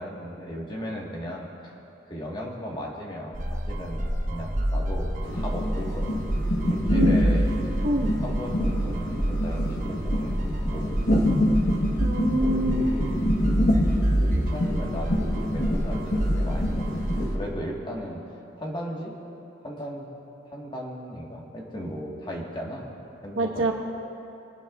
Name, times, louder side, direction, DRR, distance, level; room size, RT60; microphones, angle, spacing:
voice 1, 0.0-1.7 2.0-6.4 6.6-7.5 8.2-10.4 10.7-11.0 12.4-18.2 18.6-19.1 19.6-20.1 20.4-22.9 23.2-23.7, equal, 25° left, -2 dB, 1.5 m, -36 dB
sound 1, 3.3-17.2, right 1 dB, 45° right, 1.0 m, -27 dB
sound 2, 5.2-17.4, left 1 dB, 55° left, 1.2 m, -27 dB
voice 2, 12.0-12.9 23.4-23.7, right 1 dB, 90° right, 2 dB, 1.3 m, -25 dB
23.5 x 9.8 x 2.4 m, 2.9 s
head